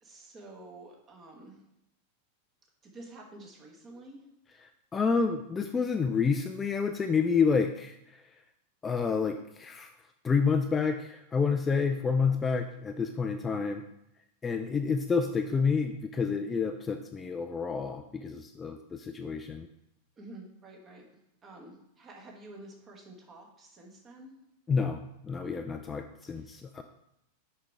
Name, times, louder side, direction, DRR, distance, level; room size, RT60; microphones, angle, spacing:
voice 1, 0.0-1.6 2.8-4.2 12.5-12.6 20.2-21.0 21.4-24.3 26.4-26.5, right 2 dB, 25° right, 1 dB, 1.3 m, -49 dB
voice 2, 4.9-8.2 8.8-9.9 10.2-13.8 14.4-19.7 24.7-26.8, left 5 dB, 15° left, 6 dB, 0.4 m, -29 dB
6.3 x 5.1 x 3.5 m, 0.81 s
figure-of-eight pair, 90°, 0 cm